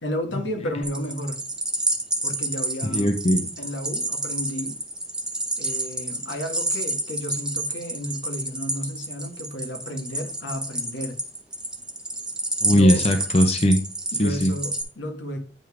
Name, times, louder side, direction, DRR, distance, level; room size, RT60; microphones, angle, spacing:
voice 1, 0.0-1.4 2.2-3.1 3.6-4.8 5.6-11.2 12.7-13.0 14.1-15.4, equal, 85° left, 4 dB, 1.6 m, -32 dB
sound 1, 0.8-14.8, right 1 dB, 5° right, 1.0 m, -29 dB
voice 2, 2.8-3.5 12.6-13.8 14.2-14.5, equal, 35° left, 5 dB, 0.7 m, -19 dB
9.1 x 3.6 x 4.8 m, 0.40 s
head